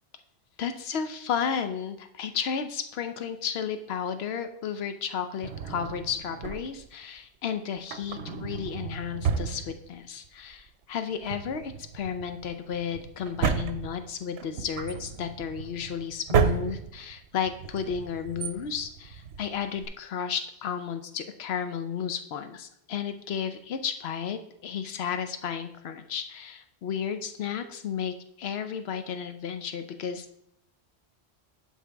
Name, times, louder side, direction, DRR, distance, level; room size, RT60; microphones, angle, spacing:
voice 1, 0.6-30.4, left 7 dB, 70° left, 9 dB, 0.9 m, -33 dB
Drawer open or close, 5.4-6.9 7.8-10.3 10.5-10.6 11.1-19.9, right 6 dB, 75° right, 0.9 m, -32 dB
11.0 x 4.6 x 3.4 m, 0.78 s
omnidirectional pair, 1.1 m